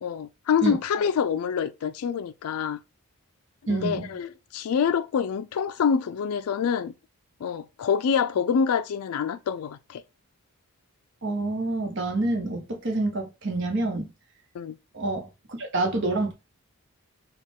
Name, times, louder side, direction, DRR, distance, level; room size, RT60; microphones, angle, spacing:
voice 1, 0.0-2.8 3.7-6.9 7.4-10.0 14.5-14.8, left 7 dB, 80° left, 0.4 m, -26 dB
voice 2, 3.7-4.1 11.2-14.1 14.9-16.3, right 2 dB, 55° right, 0.9 m, -27 dB
4.1 x 2.3 x 3.5 m
head